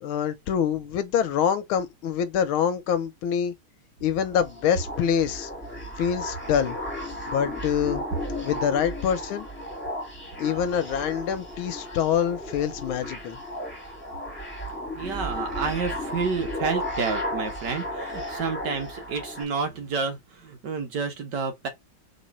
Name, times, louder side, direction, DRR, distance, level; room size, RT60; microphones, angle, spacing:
voice 1, 0.0-3.5 4.0-5.5 6.0-6.8 7.3-8.0 8.4-9.5 10.4-13.4, left 8 dB, 85° left, 1.6 m, -25 dB
sound 1, 4.2-19.4, left 1 dB, 5° left, 1.7 m, -34 dB
voice 2, 15.0-21.7, right 5 dB, 60° right, 1.6 m, -30 dB
3.7 x 3.2 x 4.1 m
omnidirectional pair, 2.2 m